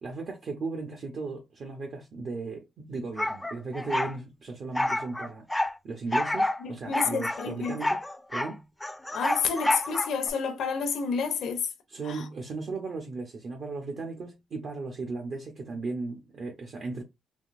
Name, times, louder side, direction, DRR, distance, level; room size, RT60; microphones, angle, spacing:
voice 1, 0.0-5.5 5.8-8.0 8.3-8.6 11.9-17.0, right 3 dB, 60° right, 0.7 m, -36 dB
sound 1, 3.2-4.2 4.7-5.7 6.1-6.6 6.9-8.5 8.8-10.3, left 1 dB, 10° left, 0.4 m, -29 dB
voice 2, 6.6-7.8 9.1-11.7 12.0-12.2, left 6 dB, 80° left, 0.6 m, -29 dB
3.5 x 2.6 x 2.4 m
cardioid pair, 85°, 0 cm